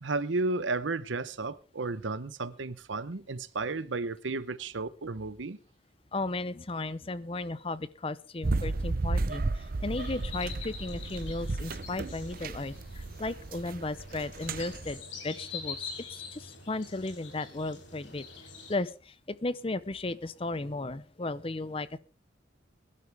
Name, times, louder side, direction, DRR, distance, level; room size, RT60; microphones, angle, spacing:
voice 1, 0.0-5.6, right 3 dB, 85° right, 0.9 m, -33 dB
voice 2, 6.1-15.8 16.1-18.3 18.7-22.0, left 2 dB, 30° left, 0.6 m, -35 dB
sound 1, 8.4-15.0, right 3 dB, 50° right, 0.6 m, -33 dB
sound 2, 9.9-18.8, left 4 dB, 85° left, 4.4 m, -45 dB
21.0 x 12.0 x 3.4 m
head